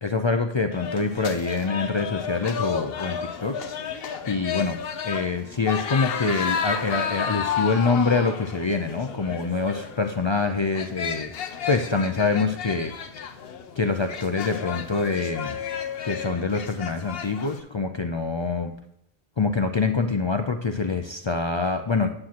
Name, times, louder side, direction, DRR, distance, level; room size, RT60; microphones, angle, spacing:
voice 1, 0.0-3.6 4.3-4.8 5.0-11.3 11.7-12.9 13.8-15.6 16.0-18.7 19.4-22.1, left 4 dB, 50° left, 6 dB, 0.3 m, -25 dB
sound 1, 0.7-17.6, left 7 dB, 70° left, 0.8 m, -32 dB
9.7 x 7.5 x 2.9 m, 0.74 s
omnidirectional pair, 1.1 m